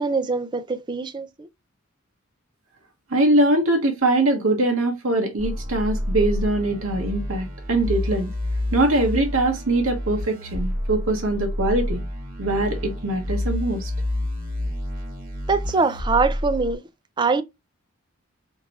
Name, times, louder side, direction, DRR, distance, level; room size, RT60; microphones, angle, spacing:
voice 1, 0.0-1.5 15.5-16.8 17.2-17.4, right 4 dB, 20° right, 0.4 m, -23 dB
voice 2, 3.1-8.3 8.7-12.0 12.4-13.9, right 2 dB, 75° right, 1.0 m, -22 dB
sound 1, 5.4-16.7, left 1 dB, 45° right, 1.4 m, -29 dB
5.1 x 2.6 x 2.9 m
head